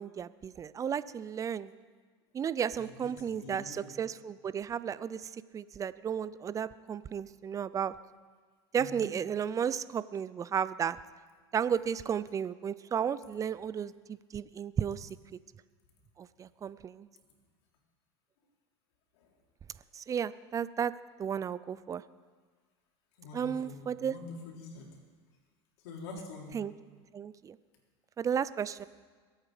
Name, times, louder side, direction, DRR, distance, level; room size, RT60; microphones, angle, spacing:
voice 1, 0.0-1.7 2.3-7.9 8.7-11.0 11.5-15.1 16.2-17.1 19.9-20.9 21.2-22.0 23.3-24.2 26.5-26.7 27.1-27.6 28.2-28.9, right 8 dB, 25° right, 17 dB, 0.5 m, -33 dB
voice 2, 2.8-3.9 8.7-9.1 19.2-19.3 23.2-24.9 25.8-26.6, left 3 dB, 75° left, 0 dB, 3.6 m, -46 dB
22.0 x 9.0 x 5.0 m, 1.5 s
supercardioid pair, 105°, 14 cm